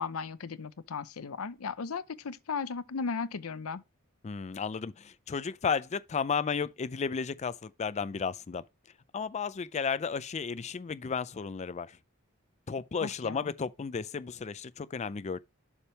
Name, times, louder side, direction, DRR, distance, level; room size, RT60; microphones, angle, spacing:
voice 1, 0.0-3.8 13.0-13.5, left 5 dB, 75° left, 0.6 m, -36 dB
voice 2, 4.2-8.6 9.1-11.9 12.7-15.4, left 5 dB, 30° left, 0.4 m, -33 dB
7.1 x 3.3 x 5.6 m
head